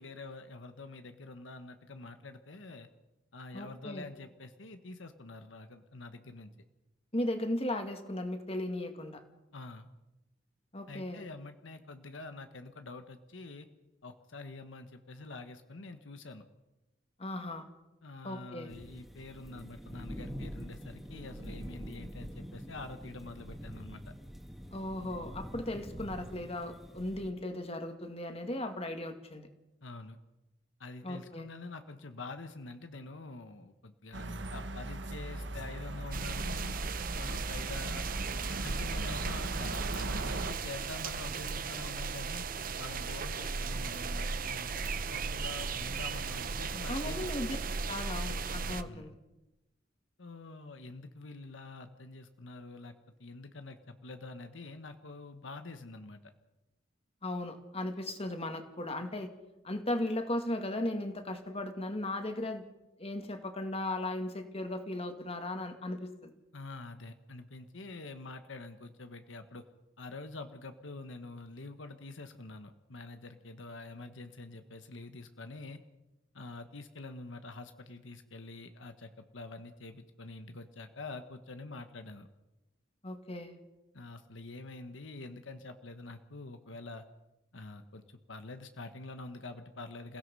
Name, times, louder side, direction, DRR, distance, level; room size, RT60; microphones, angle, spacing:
voice 1, 0.0-2.9 3.3-6.5 9.5-9.9 10.9-13.7 14.0-16.4 18.0-24.1 29.8-30.2 30.8-36.7 37.1-38.0 38.6-42.4 42.8-47.3 48.8-49.1 50.2-52.9 53.2-56.2 66.5-69.6 70.0-75.8 76.3-82.3 83.9-87.0 87.5-90.2, left 3 dB, 85° left, 8 dB, 1.3 m, -46 dB
voice 2, 3.5-4.1 7.1-9.2 10.7-11.2 17.2-17.7 18.2-18.7 24.7-29.5 31.0-31.5 46.9-47.6 47.9-49.1 57.2-59.3 59.6-62.6 63.0-66.3 83.0-83.6, left 1 dB, 30° left, 6 dB, 2.1 m, -36 dB
sound 1, 18.7-27.3, equal, ahead, 2.2 m, -45 dB
sound 2, 34.1-40.5, right 2 dB, 65° right, 1.3 m, -38 dB
sound 3, 36.1-48.8, right 5 dB, 50° right, 0.8 m, -36 dB
28.5 x 16.5 x 5.5 m, 1.0 s
head